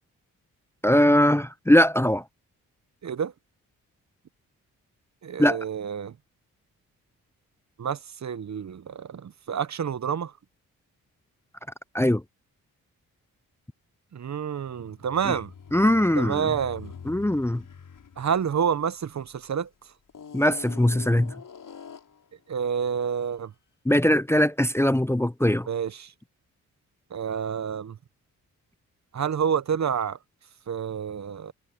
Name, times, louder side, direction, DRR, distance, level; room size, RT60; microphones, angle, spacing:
voice 1, 0.8-2.2 5.4-5.6 11.9-12.2 15.3-15.4 15.7-16.5 17.1-17.6 20.3-21.3 23.9-25.7, left 1 dB, 5° left, 0.7 m, -21 dB
voice 2, 3.0-3.3 5.2-6.1 7.8-10.3 14.1-15.5 16.2-16.9 18.2-19.7 22.5-23.5 25.7-26.1 27.1-28.0 29.1-30.2 30.7-31.5, right 7 dB, 50° right, 1.0 m, -28 dB
sound 1, 14.6-19.5 20.1-22.3, left 6 dB, 60° left, 5.7 m, -45 dB
supercardioid pair, 55°, 35 cm